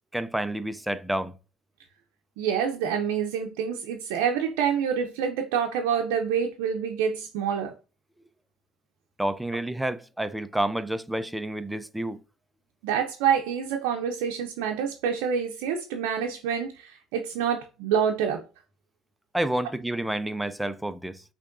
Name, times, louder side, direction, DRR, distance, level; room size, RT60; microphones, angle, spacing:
voice 1, 0.1-1.3 9.2-12.2 19.3-21.2, right 1 dB, 5° right, 0.4 m, -29 dB
voice 2, 2.4-7.7 12.8-18.4, right 7 dB, 90° right, 0.5 m, -27 dB
5.7 x 3.0 x 2.5 m
supercardioid pair, 90°, 0 cm